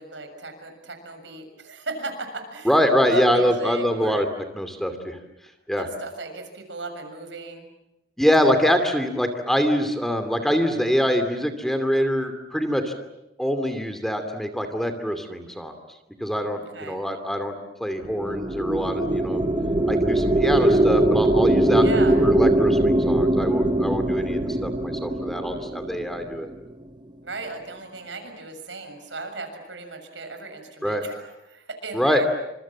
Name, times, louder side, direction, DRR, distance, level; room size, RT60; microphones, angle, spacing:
voice 1, 0.0-2.7 3.1-4.2 5.8-7.7 16.5-17.0 21.8-22.2 27.2-32.3, right 3 dB, 80° right, 6 dB, 6.8 m, -36 dB
voice 2, 2.6-4.3 4.6-5.2 5.7-5.9 8.2-12.9 13.4-15.7 16.2-17.5 17.8-19.4 19.9-21.9 22.2-26.5 30.8-31.0 31.9-32.2, equal, ahead, 7 dB, 2.6 m, -24 dB
sound 1, 18.0-26.6, right 1 dB, 25° right, 1.2 m, -21 dB
29.5 x 26.5 x 7.4 m, 0.91 s
head